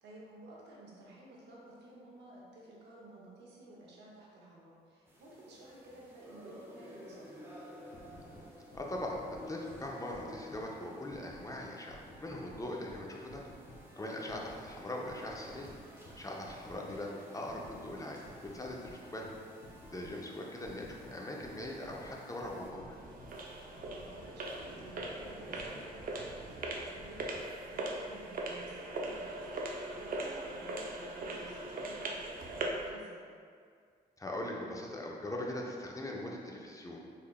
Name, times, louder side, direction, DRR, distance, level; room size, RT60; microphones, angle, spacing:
voice 1, 0.0-7.4 23.7-33.3, right 2 dB, 75° right, -4 dB, 0.9 m, -53 dB
sound 1, 5.1-22.7, left 1 dB, 10° right, 0.8 m, -55 dB
sound 2, 7.8-27.4, equal, 80° left, 0.7 m, -54 dB
voice 2, 8.7-13.4 14.0-15.7 16.1-19.3 19.9-23.0 34.2-37.2, left 1 dB, 20° left, -1 dB, 0.6 m, -41 dB
sound 3, 22.6-32.9, right 2 dB, 55° right, 0.5 m, -40 dB
3.7 x 3.4 x 2.3 m, 2.1 s
cardioid pair, 65°, 18 cm